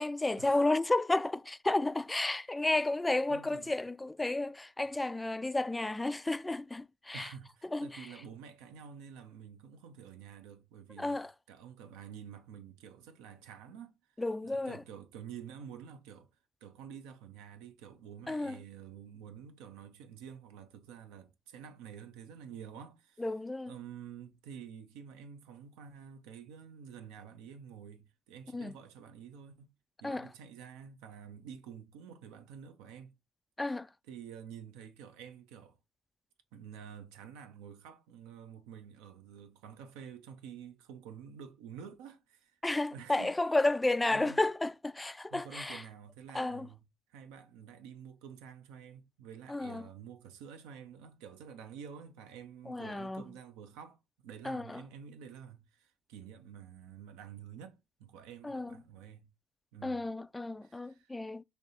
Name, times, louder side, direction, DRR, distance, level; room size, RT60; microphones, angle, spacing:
voice 1, 0.0-7.3 7.7-7.9 11.0-11.3 14.2-14.8 18.3-18.6 23.2-23.7 28.5-28.7 30.0-30.3 33.6-33.9 42.6-45.8 46.3-46.7 49.5-49.9 52.7-53.2 54.4-54.8 58.4-58.8 59.8-61.4, left 2 dB, 15° left, 0.3 m, -32 dB
voice 2, 3.3-3.7 7.1-14.0 14.4-16.3 16.6-23.2 23.6-29.7 30.0-33.1 34.1-35.8 36.5-42.6 42.9-43.3 44.1-44.4 45.3-46.8 47.1-59.3 59.7-60.0 60.6-61.2, right 8 dB, 85° right, 0.6 m, -49 dB
3.3 x 2.8 x 4.2 m
supercardioid pair, 75°, 0 cm